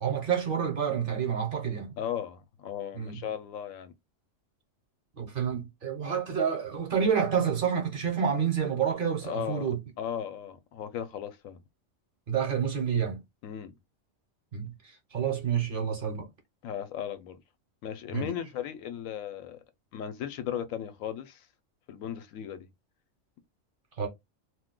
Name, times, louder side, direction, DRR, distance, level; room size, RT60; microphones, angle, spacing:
voice 1, 0.0-1.9 2.9-3.2 5.2-9.8 12.3-13.2 14.5-14.7 15.1-16.3 18.1-18.3 24.0-24.1, right 7 dB, 50° right, 0.8 m, -28 dB
voice 2, 2.0-3.9 9.2-9.7 10.0-11.6 13.4-13.7 16.6-17.4 17.8-19.6 19.9-21.5 21.9-22.7, left 9 dB, 85° left, 1.0 m, -36 dB
2.4 x 2.2 x 3.6 m
omnidirectional pair, 1.4 m